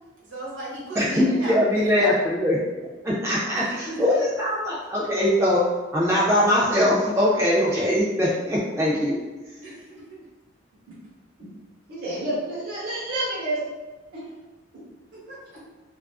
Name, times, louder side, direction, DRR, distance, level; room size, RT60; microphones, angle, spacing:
voice 1, 0.3-2.3 3.5-4.1 9.6-10.1 15.1-15.7, right 1 dB, 75° right, -6 dB, 1.0 m, -36 dB
voice 2, 1.0-2.6 3.0-5.6 5.9-9.2, left 1 dB, 15° right, -8 dB, 0.3 m, -22 dB
voice 3, 11.9-13.6 14.1-14.3 14.7-14.8, right 1 dB, 50° right, -8 dB, 1.0 m, -29 dB
2.4 x 2.3 x 2.3 m, 1.2 s
head